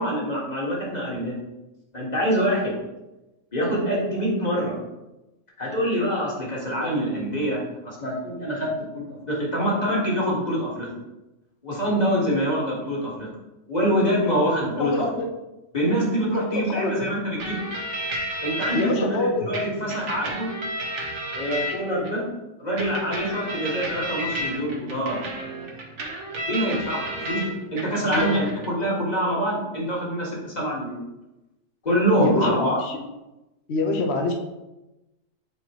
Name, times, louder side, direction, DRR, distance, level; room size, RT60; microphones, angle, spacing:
voice 1, 0.0-1.4 1.9-2.7 3.5-4.8 5.6-8.9 9.3-10.9 11.6-13.3 13.7-15.0 15.7-17.6 18.4-20.5 21.4-22.2 22.6-25.2 26.5-31.0 31.8-32.8, equal, 30° left, -4 dB, 1.9 m, -25 dB
voice 2, 14.8-15.3 16.3-17.1 18.7-19.5 28.1-28.3 32.2-33.0 33.7-34.3, left 2 dB, 55° left, 3 dB, 1.1 m, -25 dB
sound 1, 17.4-18.8 19.5-22.1 22.8-27.5 27.8-28.7, right 1 dB, 60° right, 1.4 m, -32 dB
8.0 x 4.5 x 3.0 m, 0.99 s
omnidirectional pair, 1.4 m